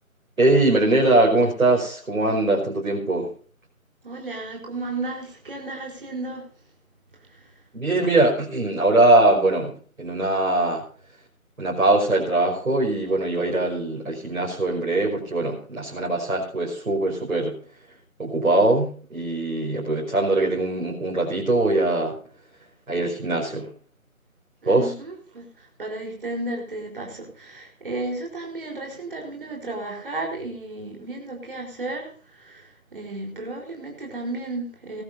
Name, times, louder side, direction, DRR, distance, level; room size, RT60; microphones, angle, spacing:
voice 1, 0.4-3.3 7.7-9.7 10.0-10.8 11.6-17.6 18.2-22.2 22.9-23.7 24.7-24.9, right 2 dB, 70° right, -3 dB, 5.3 m, -21 dB
voice 2, 4.0-6.5 7.2-7.5 24.6-35.0, right 2 dB, 40° right, 0 dB, 4.2 m, -34 dB
19.0 x 14.0 x 2.7 m, 0.41 s
figure-of-eight pair, 165°, 42 cm